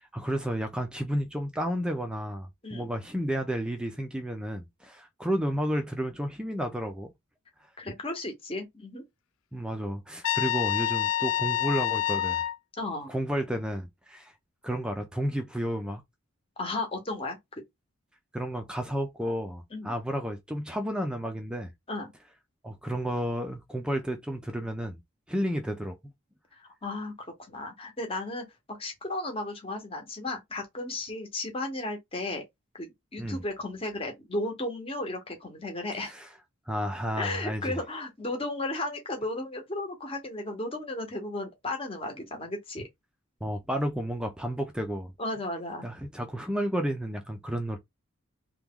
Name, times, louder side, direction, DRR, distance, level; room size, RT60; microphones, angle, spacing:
voice 1, 0.1-7.1 9.5-12.4 13.1-14.3 14.6-16.0 18.3-21.7 22.6-25.0 25.3-26.0 33.2-33.4 36.0-36.3 36.7-37.8 43.4-45.1 45.8-47.8, equal, 5° right, 0.4 m, -31 dB
voice 2, 7.8-9.0 12.8-13.1 16.6-17.4 19.7-19.9 21.9-22.1 26.8-27.1 27.5-32.4 32.7-36.1 37.2-42.8 45.2-45.9, left 2 dB, 25° left, 0.9 m, -34 dB
Trumpet, 10.2-12.6, left 13 dB, 70° left, 0.3 m, -27 dB
3.0 x 2.2 x 3.5 m
head